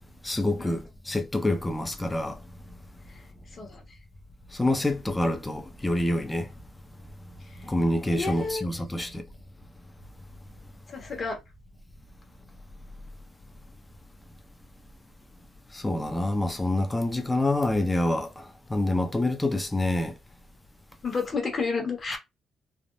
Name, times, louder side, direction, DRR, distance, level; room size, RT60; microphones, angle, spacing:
voice 1, 0.2-2.4 2.7-2.8 4.5-6.5 7.6-9.2 15.7-20.1, left 1 dB, 15° left, 0.7 m, -27 dB
voice 2, 8.1-8.7 10.9-11.4 21.0-22.2, left 4 dB, 40° left, 1.2 m, -31 dB
3.4 x 2.0 x 2.6 m
cardioid pair, 90°, 0 cm